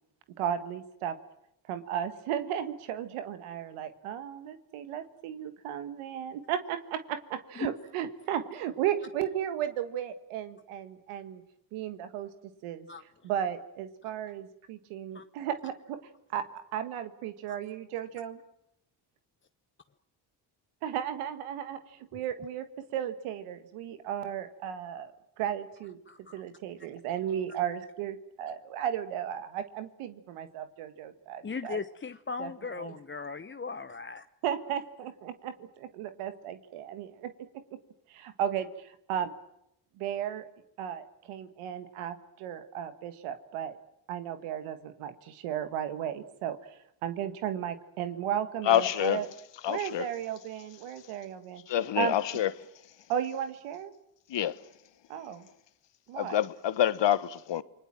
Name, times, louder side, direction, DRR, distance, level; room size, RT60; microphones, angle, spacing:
voice 1, 0.4-1.2 1.6-11.4 11.7-12.3 12.6-18.4 20.8-26.0 26.3-31.8 32.4-33.0 34.4-37.8 38.1-39.3 39.9-40.5 40.8-43.8 44.1-49.3 49.7-52.2 53.1-53.9 55.1-55.5 56.1-56.4, right 10 dB, 85° right, 1.7 m, -35 dB
voice 2, 26.1-26.4 31.4-34.3, left 5 dB, 25° left, 0.9 m, -37 dB
voice 3, 48.7-49.2 49.6-50.0 51.7-52.5 54.3-54.6 56.2-57.6, left 11 dB, 60° left, 1.3 m, -27 dB
28.5 x 20.5 x 7.6 m
hypercardioid pair, 50°, 49 cm